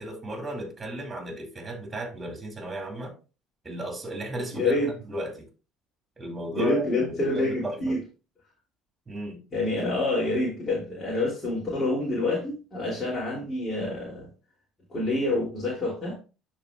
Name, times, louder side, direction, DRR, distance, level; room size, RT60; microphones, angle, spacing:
voice 1, 0.0-3.1 3.6-4.8 5.1-5.5 6.2-8.0 9.1-9.4, right 1 dB, 25° right, 2.6 m, -34 dB
voice 2, 4.5-4.9 6.5-8.0 9.5-14.3 14.9-16.2, left 2 dB, 35° left, 3.1 m, -27 dB
12.5 x 4.1 x 2.4 m
hypercardioid pair, 60°, 0 cm